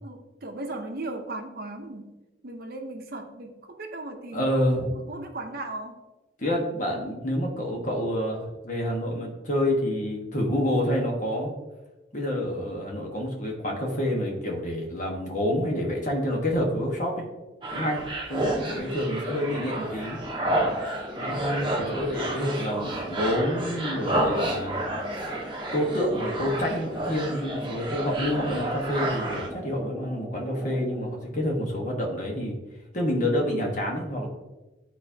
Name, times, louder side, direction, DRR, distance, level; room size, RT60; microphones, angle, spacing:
voice 1, 0.0-2.2 2.4-6.0 18.7-19.2 21.7-22.2, right 2 dB, 50° right, 4 dB, 0.7 m, -38 dB
voice 2, 4.3-4.9 6.4-11.5 12.1-17.1 17.7-18.0 18.3-20.2 21.1-24.8 25.7-32.5 32.9-34.3, left 1 dB, 45° left, 0 dB, 1.3 m, -28 dB
sound 1, 17.6-29.5, right 1 dB, 25° right, 0.9 m, -30 dB
sound 2, 20.2-31.0, equal, 5° right, 0.5 m, -41 dB
10.5 x 4.2 x 2.8 m, 1.1 s
head